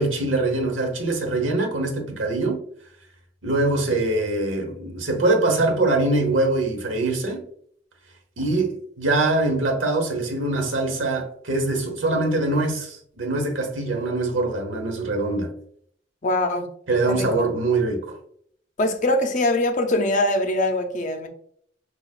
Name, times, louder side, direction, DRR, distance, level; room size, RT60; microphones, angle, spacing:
voice 1, 0.0-2.6 3.4-7.5 8.4-15.5 16.9-18.2, right 2 dB, 85° right, 1.0 m, -23 dB
voice 2, 16.2-16.7 17.1-17.5 18.8-21.3, left 1 dB, 40° left, 0.6 m, -22 dB
6.4 x 2.3 x 2.4 m
head